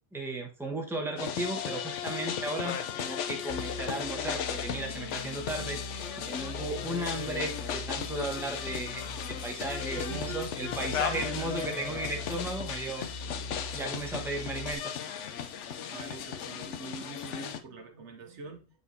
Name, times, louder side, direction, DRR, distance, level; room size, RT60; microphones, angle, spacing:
voice 1, 0.1-9.0 9.3-13.0 13.7-14.8, right 2 dB, ahead, 0 dB, 1.1 m, -35 dB
sound 1, 1.2-17.6, left 8 dB, 70° left, 1.0 m, -36 dB
sound 2, 3.5-14.7, left 2 dB, 55° left, 0.5 m, -42 dB
voice 2, 9.9-10.8 11.4-12.1 15.9-18.7, right 4 dB, 70° right, 6 dB, 1.1 m, -45 dB
8.1 x 5.5 x 2.7 m, 0.34 s
omnidirectional pair, 1.3 m